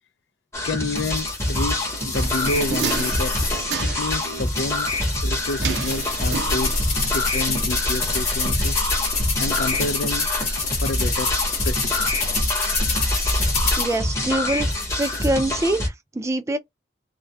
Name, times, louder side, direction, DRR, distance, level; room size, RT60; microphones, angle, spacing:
sound 1, 0.5-15.9, left 1 dB, 15° left, 0.7 m, -26 dB
voice 1, 0.6-3.4 3.8-4.9 5.2-6.8 7.0-8.8 9.4-10.3 10.7-11.3 11.6-12.1, left 2 dB, 75° left, 0.4 m, -29 dB
sound 2, 1.0-3.6 4.0-14.0 14.6-15.3, left 3 dB, 40° left, 1.0 m, -27 dB
sound 3, 2.2-4.3 5.6-7.1 7.3-7.4, right 5 dB, 70° right, 0.6 m, -30 dB
voice 2, 13.8-14.7 15.0-16.6, right 1 dB, 15° right, 0.3 m, -24 dB
2.2 x 2.1 x 2.6 m
head